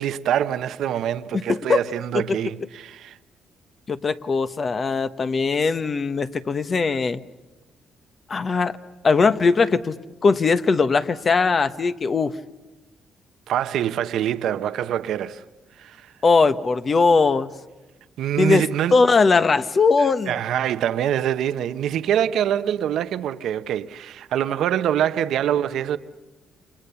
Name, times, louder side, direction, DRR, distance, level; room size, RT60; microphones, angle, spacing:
voice 1, 0.0-3.2 13.5-15.4 15.8-16.1 18.2-19.0 20.0-26.0, right 10 dB, 80° right, 1.0 m, -25 dB
voice 2, 3.9-7.2 8.3-8.8 9.0-9.9 10.2-12.3 16.2-17.5 18.4-18.6 18.9-20.3, left 4 dB, 40° left, 1.2 m, -20 dB
29.5 x 26.5 x 7.0 m
cardioid pair, 90°, 0 cm